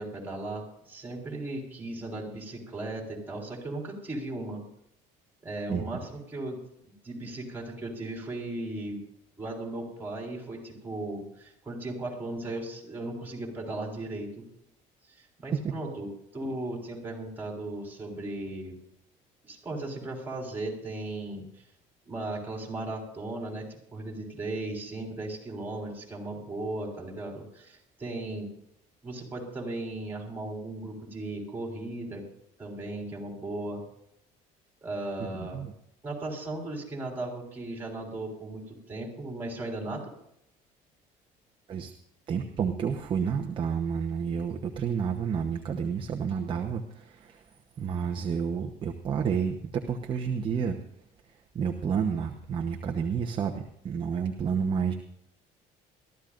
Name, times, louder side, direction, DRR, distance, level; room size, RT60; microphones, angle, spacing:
voice 1, 0.0-4.6 5.4-6.6 7.0-9.0 9.4-14.4 15.1-18.8 19.4-21.4 22.1-28.5 29.0-32.2 32.6-33.8 34.8-35.6 36.0-40.1, right 2 dB, 15° right, 0 dB, 4.4 m, -36 dB
voice 2, 35.4-35.7 41.7-41.9 42.3-47.4 47.8-50.8 51.5-54.9, right 6 dB, 35° right, 3 dB, 1.0 m, -30 dB
22.0 x 13.5 x 2.6 m, 0.75 s
cardioid pair, 135°, 15 cm